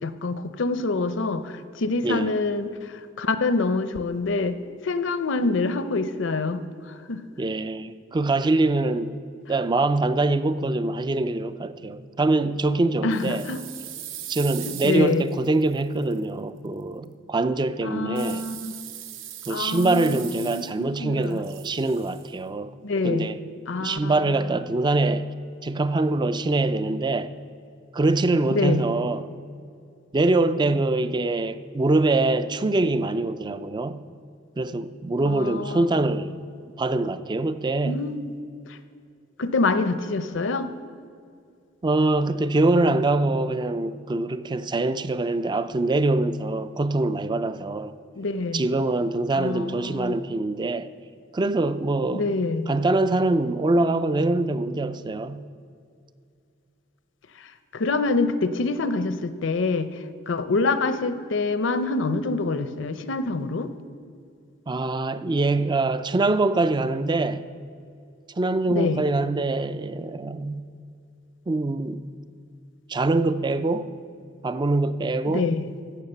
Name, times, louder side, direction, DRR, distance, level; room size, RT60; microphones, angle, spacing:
voice 1, 0.0-7.2 13.0-13.6 14.7-15.3 17.8-18.7 19.5-21.4 22.8-23.3 23.7-24.6 28.5-28.9 35.2-35.9 37.9-38.3 38.7-38.8 39.4-40.7 48.1-48.7 49.3-50.2 52.1-52.7 57.4-60.0 60.3-63.7 68.7-69.0 75.2-75.7, left 3 dB, 65° left, 0.6 m, -26 dB
voice 2, 2.0-2.3 7.4-9.1 9.5-13.4 14.3-18.4 19.5-22.7 23.0-23.4 23.8-25.3 25.6-27.3 27.9-29.2 30.1-34.0 34.6-36.4 36.8-38.0 41.8-47.9 48.5-50.9 51.3-52.4 52.7-55.4 64.7-67.4 68.4-70.7 71.5-72.0 72.9-73.9 74.4-75.5, right 2 dB, 25° right, 0.4 m, -24 dB
sound 1, 13.1-16.2 18.1-21.0 21.2-22.3, right 11 dB, 75° right, 0.8 m, -40 dB
15.5 x 5.7 x 6.7 m
head